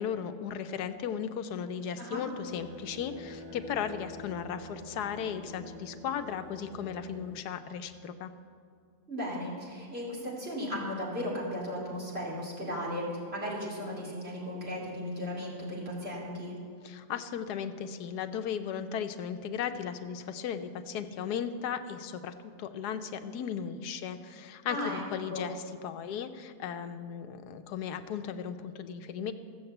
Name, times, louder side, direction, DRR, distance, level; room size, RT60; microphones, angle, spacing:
voice 1, 0.0-8.3 16.8-29.3, left 8 dB, 80° left, 9 dB, 1.2 m, -36 dB
sound 1, 2.2-7.5, equal, 60° right, 1.5 m, -48 dB
voice 2, 9.1-16.5 24.7-25.0 25.3-25.5, left 1 dB, 40° right, -6 dB, 3.5 m, -36 dB
14.5 x 7.2 x 7.8 m, 2.2 s
omnidirectional pair, 1.7 m